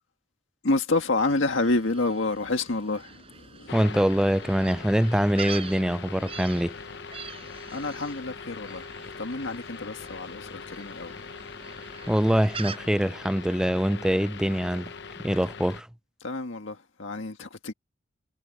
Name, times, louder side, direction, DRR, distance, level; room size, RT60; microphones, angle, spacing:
voice 1, 0.6-3.8 7.7-11.3 16.2-17.7, left 2 dB, 90° left, 1.7 m, -29 dB
Gull seagull, 1.2-12.8, right 5 dB, 30° right, 6.6 m, -44 dB
sound 1, 3.7-15.8, left 5 dB, 60° left, 0.9 m, -42 dB
voice 2, 3.7-6.7 12.1-14.9 15.2-15.9, equal, 5° right, 0.4 m, -24 dB
head